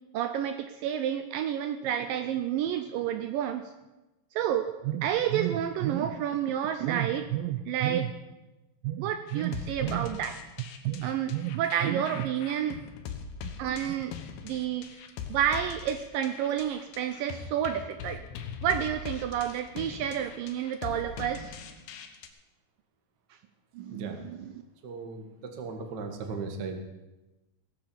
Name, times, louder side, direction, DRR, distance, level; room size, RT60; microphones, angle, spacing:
voice 1, 0.1-3.7 4.4-8.1 8.8-12.8 13.4-14.1 14.4-14.9 15.3-18.2 18.6-21.5 23.8-24.1 24.4-24.5, right 10 dB, 80° right, 9 dB, 2.1 m, -30 dB
sound 1, 9.3-22.3, left 6 dB, 75° left, 2.8 m, -41 dB
voice 2, 23.9-24.2 24.8-26.8, right 4 dB, 55° right, 4 dB, 1.1 m, -37 dB
17.5 x 7.7 x 7.0 m, 1.0 s
omnidirectional pair, 4.5 m